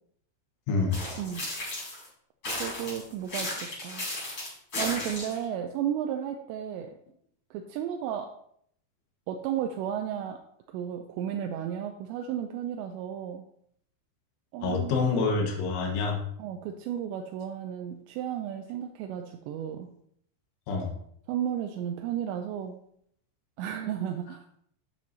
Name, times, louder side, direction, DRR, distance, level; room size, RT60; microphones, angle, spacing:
voice 1, 0.7-1.0 14.6-16.2 20.7-20.9, left 4 dB, 80° left, 1 dB, 3.6 m, -27 dB
sound 1, 0.9-2.1 2.4-5.4, left 1 dB, 25° left, 4.2 m, -35 dB
voice 2, 2.6-4.1 4.8-6.9 7.5-8.3 9.3-10.4 10.7-13.4 14.5-14.9 16.4-19.9 21.3-22.8 23.6-24.4, right 9 dB, 85° right, 4 dB, 2.6 m, -33 dB
10.0 x 7.8 x 2.8 m, 0.68 s
omnidirectional pair, 5.5 m